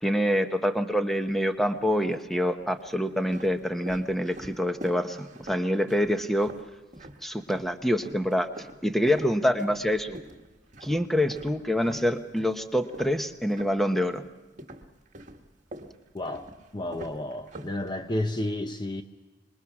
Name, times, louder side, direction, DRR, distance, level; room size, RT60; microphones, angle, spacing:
voice 1, 0.0-6.5 7.2-8.5 8.8-10.2 10.8-14.2, equal, ahead, 1.0 m, -26 dB
sound 1, 1.2-1.9 2.6-7.7 8.0-14.3 14.6-18.3, right 1 dB, 40° right, 1.6 m, -45 dB
voice 2, 16.1-19.0, left 1 dB, 25° left, 0.7 m, -31 dB
26.0 x 22.0 x 6.0 m
head